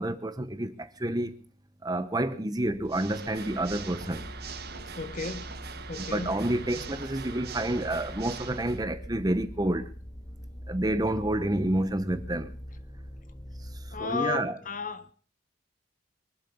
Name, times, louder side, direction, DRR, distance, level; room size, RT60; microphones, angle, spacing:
voice 1, 0.0-1.4 1.8-4.2 6.1-9.9 10.7-12.5 14.0-14.6, right 1 dB, 20° right, 0.9 m, -29 dB
sound 1, 2.6-14.0, equal, 20° left, 1.1 m, -43 dB
Water / Mechanisms, 2.8-8.8, right 5 dB, 55° right, 1.6 m, -42 dB
voice 2, 5.0-5.5 5.9-6.3 6.8-6.9 13.9-15.1, left 5 dB, 40° left, 1.3 m, -34 dB
23.5 x 7.8 x 6.9 m
head